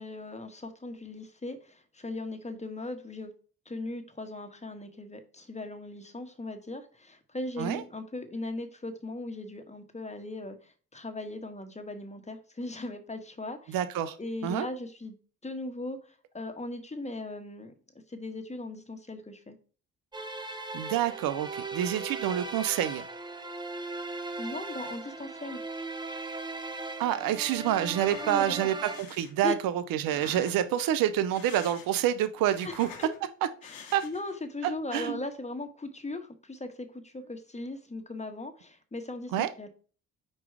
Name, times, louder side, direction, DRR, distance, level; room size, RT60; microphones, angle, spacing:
voice 1, 0.0-3.3 3.6-13.8 14.2-15.1 15.4-16.0 16.3-17.7 18.1-19.6 24.4-25.6 28.2-28.6 29.4-29.5 32.6-32.7 33.0-33.1 33.6-39.7, left 2 dB, 15° left, 7 dB, 1.5 m, -38 dB
voice 2, 13.7-14.2 14.4-14.7 20.7-23.0 27.0-32.9 33.9-34.0 34.6-35.2 39.3-39.5, right 11 dB, 60° right, 11 dB, 0.7 m, -28 dB
sound 1, 20.1-29.0, right 3 dB, 10° right, 1.1 m, -38 dB
sound 2, 27.8-28.4 28.8-29.3 30.0-30.8 31.2-32.1 32.4-33.2 33.6-34.4, left 7 dB, 70° left, 1.5 m, -47 dB
5.2 x 4.7 x 4.7 m, 0.40 s
hypercardioid pair, 40°, 38 cm